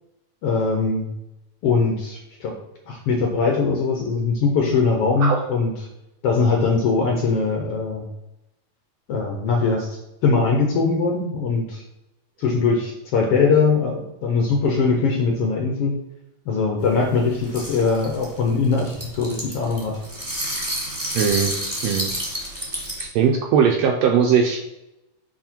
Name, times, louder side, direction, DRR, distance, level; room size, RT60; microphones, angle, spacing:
voice 1, 0.4-1.1 1.6-2.5 2.9-5.7 6.2-8.1 9.1-11.8 12.4-15.9 16.5-20.0, left 4 dB, 70° left, 1 dB, 1.5 m, -21 dB
sound 1, 16.8-23.0, right 1 dB, 15° right, 1.4 m, -30 dB
voice 2, 21.1-21.5 21.8-22.1 23.0-24.7, right 7 dB, 75° right, 2 dB, 1.6 m, -19 dB
5.8 x 4.8 x 4.4 m, 0.93 s
omnidirectional pair, 3.5 m